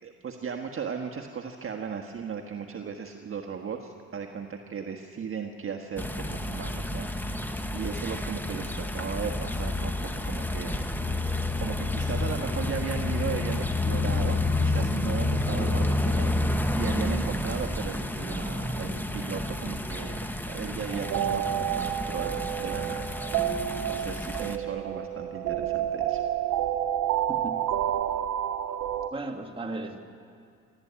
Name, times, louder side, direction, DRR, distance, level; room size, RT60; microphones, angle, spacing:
voice 1, 0.0-9.9 10.3-10.8 11.0-20.2 20.5-26.2, right 6 dB, 45° right, 3 dB, 1.5 m, -36 dB
sound 1, 6.0-24.6, left 2 dB, 5° left, 1.3 m, -30 dB
sound 2, 20.9-29.1, right 11 dB, 75° right, 0.9 m, -29 dB
voice 2, 27.3-27.6 29.1-30.0, right 2 dB, 20° right, 2 dB, 2.5 m, -35 dB
27.0 x 13.0 x 8.7 m, 2.2 s
cardioid pair, 90°, 30 cm